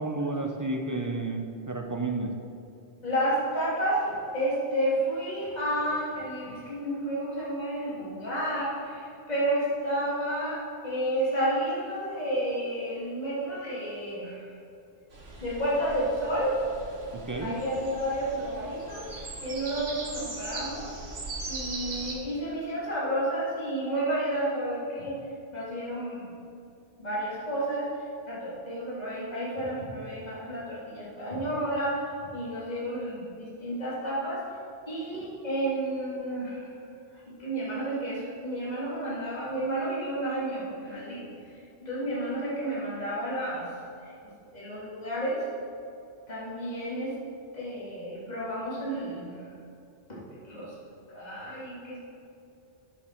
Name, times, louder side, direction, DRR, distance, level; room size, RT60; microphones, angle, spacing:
voice 1, 0.0-2.3 17.1-17.6, right 2 dB, 30° right, 3 dB, 0.3 m, -31 dB
voice 2, 3.0-14.6 15.4-16.6 17.4-20.9 21.5-25.2 25.5-26.3 27.0-27.9 28.3-32.1 32.3-34.4 34.9-36.7 37.4-41.2 41.8-43.7 44.0-44.1 44.5-45.4 46.3-47.1 47.5-49.3 50.1-50.2 50.4-50.7 51.1-52.0, right 1 dB, 35° left, -7 dB, 2.3 m, -31 dB
sound 1, 15.1-22.1, right 2 dB, 65° right, 1.5 m, -40 dB
9.7 x 6.6 x 4.4 m, 2.6 s
omnidirectional pair, 1.2 m